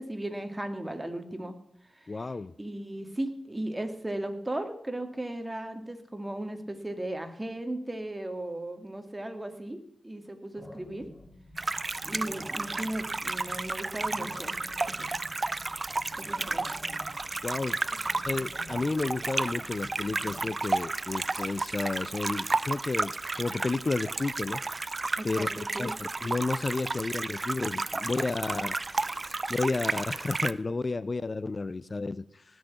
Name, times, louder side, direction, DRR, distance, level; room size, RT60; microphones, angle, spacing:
voice 1, 0.0-1.5 1.9-2.2 2.6-9.8 10.0-11.1 12.0-14.6 15.0-15.1 16.2-16.7 25.2-25.9, right 1 dB, 20° right, 7 dB, 2.4 m, -36 dB
voice 2, 2.1-2.5 17.4-17.8 18.2-24.6 25.2-28.8 29.1-32.6, left 3 dB, 45° left, 17 dB, 0.5 m, -32 dB
sound 1, 10.5-20.4, left 1 dB, 15° left, 4.4 m, -49 dB
sound 2, 11.6-30.5, right 3 dB, 40° right, 0.6 m, -32 dB
18.5 x 6.3 x 8.4 m, 0.73 s
cardioid pair, 50°, 0 cm